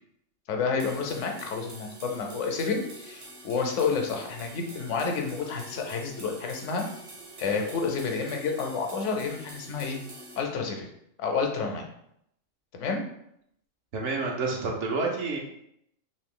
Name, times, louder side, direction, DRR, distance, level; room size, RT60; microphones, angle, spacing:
voice 1, 0.5-6.9 7.4-10.0 10.4-10.9 11.2-11.9 12.7-13.0, left 5 dB, 75° left, 3 dB, 0.9 m, -30 dB
sound 1, 0.8-10.4, right 2 dB, 50° right, 0.8 m, -46 dB
voice 2, 13.9-15.4, right 3 dB, 70° right, 0 dB, 1.0 m, -29 dB
2.9 x 2.6 x 3.6 m, 0.74 s
omnidirectional pair, 1.3 m